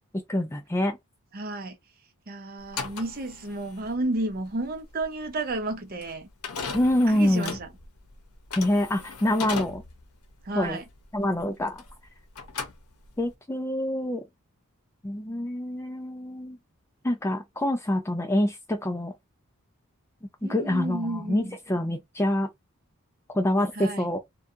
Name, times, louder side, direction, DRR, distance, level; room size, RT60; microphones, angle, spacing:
voice 1, 0.3-1.0 6.7-7.5 8.6-9.8 10.5-10.8 11.1-11.8 13.2-14.2 15.0-16.6 17.0-19.1 20.4-22.5 23.3-24.2, left 1 dB, 10° left, 0.3 m, -26 dB
voice 2, 1.3-1.8 2.3-6.3 7.1-7.7 10.4-10.8 20.4-21.6 23.7-24.1, right 2 dB, 40° right, 0.6 m, -32 dB
sound 1, 2.6-12.1 12.3-13.3, left 5 dB, 80° left, 0.7 m, -38 dB
2.7 x 2.2 x 2.4 m
head